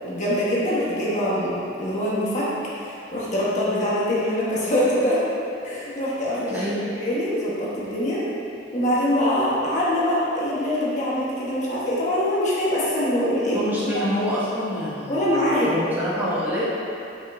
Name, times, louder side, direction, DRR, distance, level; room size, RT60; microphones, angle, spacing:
voice 1, 0.0-2.5 2.8-5.2 5.6-6.6 7.0-8.2 8.7-13.6 13.9-14.0 15.1-15.7, left 1 dB, 40° left, -8 dB, 1.4 m, -23 dB
voice 2, 6.5-6.8 13.5-16.6, equal, 10° right, -10 dB, 1.2 m, -27 dB
8.2 x 5.8 x 2.7 m, 2.8 s
head